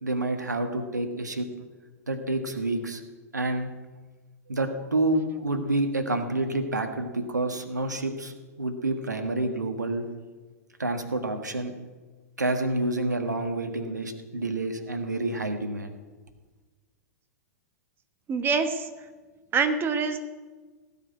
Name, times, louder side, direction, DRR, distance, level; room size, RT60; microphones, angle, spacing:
voice 1, 0.0-1.5 2.1-3.0 3.3-3.7 4.5-10.0 10.8-11.7 12.4-15.9, right 2 dB, 85° right, 7 dB, 1.5 m, -28 dB
voice 2, 18.3-18.9 19.5-20.2, right 5 dB, 25° right, 8 dB, 1.2 m, -25 dB
17.5 x 5.8 x 9.5 m, 1.3 s
figure-of-eight pair, 100°, 9 cm